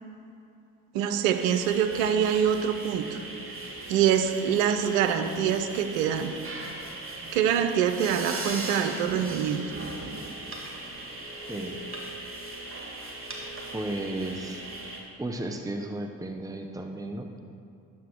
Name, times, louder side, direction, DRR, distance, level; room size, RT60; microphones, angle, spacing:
voice 1, 0.9-3.2 3.9-6.3 7.3-9.7, right 8 dB, 80° right, 7 dB, 0.8 m, -25 dB
sound 1, 1.3-15.0, right 2 dB, 30° right, 3.0 m, -39 dB
voice 2, 13.7-14.6 15.2-17.4, right 1 dB, 10° right, 4 dB, 1.0 m, -34 dB
11.5 x 7.7 x 6.2 m, 2.6 s
hypercardioid pair, 45°, 39 cm